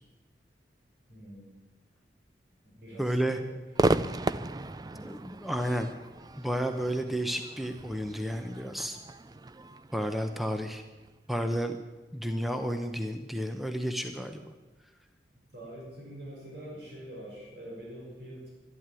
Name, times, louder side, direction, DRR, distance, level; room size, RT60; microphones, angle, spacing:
voice 1, 1.1-1.6 2.6-3.6 15.5-18.5, right 1 dB, 75° right, -3 dB, 5.6 m, -45 dB
voice 2, 3.0-3.4 4.9-6.0 6.4-9.0 9.9-10.8 11.3-11.8 12.1-14.5, equal, ahead, 6 dB, 0.8 m, -31 dB
Crowd / Fireworks, 3.7-11.1, right 2 dB, 20° right, 0.4 m, -34 dB
12.5 x 12.0 x 9.1 m, 1.2 s
head